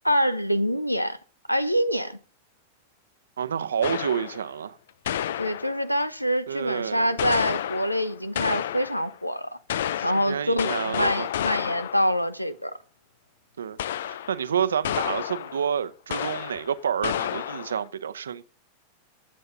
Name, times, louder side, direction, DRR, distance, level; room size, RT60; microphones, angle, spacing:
voice 1, 0.0-1.2 1.5-2.2 5.4-9.6 10.0-12.8, equal, 90° left, 0.9 m, -25 dB
voice 2, 3.4-4.8 6.5-7.2 10.0-11.3 13.6-13.8 14.0-18.4, right 8 dB, 70° right, 0.8 m, -29 dB
sound 1, 3.8-4.5 5.1-6.0 7.2-9.1 9.7-12.2 13.8-14.5 14.8-15.7 16.1-16.7 17.0-17.9, left 10 dB, 60° left, 0.5 m, -30 dB
22.5 x 7.7 x 3.8 m
figure-of-eight pair, 90°, 0 cm